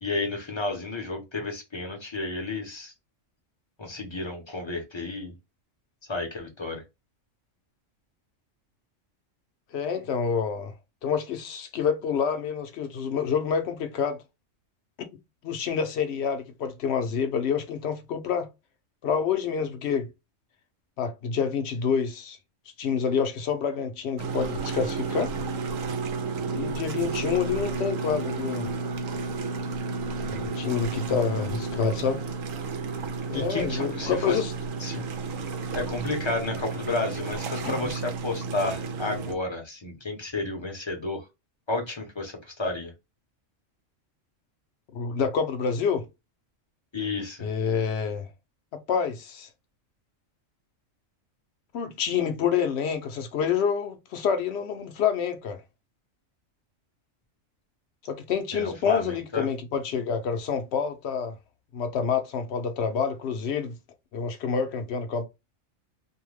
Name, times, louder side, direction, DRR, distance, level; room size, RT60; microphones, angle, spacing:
voice 1, 0.0-2.9 3.8-5.3 6.1-6.8 33.3-34.4 34.8-35.0 35.7-41.2 41.7-42.9 46.9-47.5 58.5-59.5, left 2 dB, 30° left, 0.6 m, -31 dB
voice 2, 9.7-10.7 11.0-14.2 15.4-18.5 19.0-20.1 21.0-22.4 22.8-25.3 26.5-28.7 30.3-32.2 33.3-34.5 37.6-37.8 44.9-46.1 47.4-48.3 48.7-49.5 51.7-55.6 58.0-61.4 61.7-63.8 64.1-65.2, left 6 dB, 65° left, 0.8 m, -27 dB
sound 1, 24.2-39.3, right 4 dB, 80° right, 1.0 m, -32 dB
2.7 x 2.1 x 3.1 m
omnidirectional pair, 1.3 m